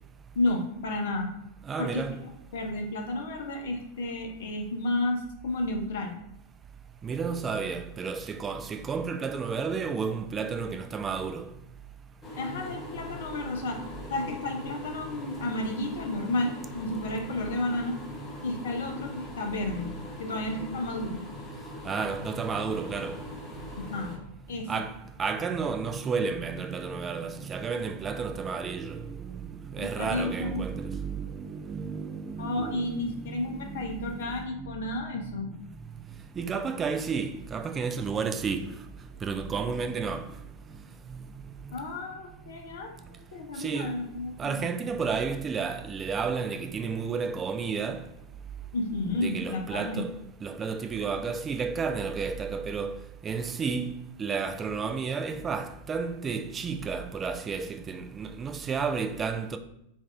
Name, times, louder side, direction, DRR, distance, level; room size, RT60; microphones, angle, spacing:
voice 1, 0.3-1.3 1.8-6.1 12.4-13.8 14.1-18.0 18.4-19.9 20.2-21.2 23.8-24.1 24.5-24.7 29.8-30.6 32.4-35.5 41.7-44.7 48.7-50.1, left 2 dB, 60° left, 0.6 m, -32 dB
voice 2, 1.7-2.2 7.0-11.5 21.8-23.2 24.7-34.2 36.4-38.7 39.2-40.3 41.1-41.2 43.6-44.0 44.4-48.1 49.1-50.1 50.4-53.0 53.2-53.9 54.2-59.6, right 5 dB, 20° right, 0.3 m, -32 dB
sound 1, 12.2-24.2, left 1 dB, 25° left, 0.8 m, -41 dB
4.2 x 2.4 x 3.3 m
figure-of-eight pair, 90°, 0 cm